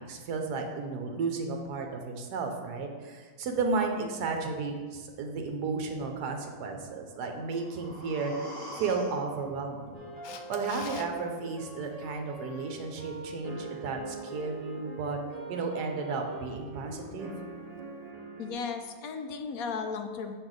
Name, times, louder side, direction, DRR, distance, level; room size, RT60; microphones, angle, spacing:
voice 1, 0.0-8.5 8.8-10.0 10.5-15.2 15.5-17.4, right 4 dB, 75° right, 3 dB, 1.3 m, -33 dB
sound 1, 7.1-11.1 11.4-11.5, left 1 dB, 40° left, 2.0 m, -46 dB
sound 2, 9.9-18.5, right 2 dB, 50° right, 0.4 m, -42 dB
Camera, 10.2-11.1 17.8-17.9, left 7 dB, 85° left, 1.2 m, -44 dB
voice 2, 18.4-20.4, left 5 dB, 70° left, 6 dB, 0.9 m, -35 dB
6.3 x 4.5 x 3.9 m, 1.5 s
omnidirectional pair, 1.8 m